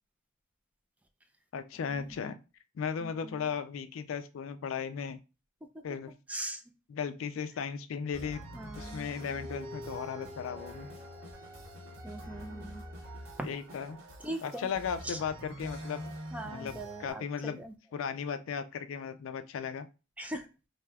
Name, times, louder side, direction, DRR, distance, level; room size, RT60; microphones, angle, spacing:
voice 1, 1.5-2.4 2.8-5.2 5.8-6.1 6.9-8.4 8.8-10.9 13.4-14.0 14.4-16.1 16.4-16.7 17.0-17.6 17.9-19.9, left 6 dB, 70° left, 10 dB, 0.3 m, -36 dB
voice 2, 3.0-3.5 6.3-6.6 8.5-9.1 12.0-12.8 13.4-13.5 14.2-14.7 15.0-15.2 16.3-17.7 20.2-20.5, right 1 dB, 5° right, 6 dB, 0.3 m, -40 dB
sound 1, 8.1-17.1, equal, 85° right, 1.4 m, -46 dB
sound 2, 9.2-14.0, left 1 dB, 65° right, 0.7 m, -49 dB
2.7 x 2.3 x 3.3 m, 0.30 s
head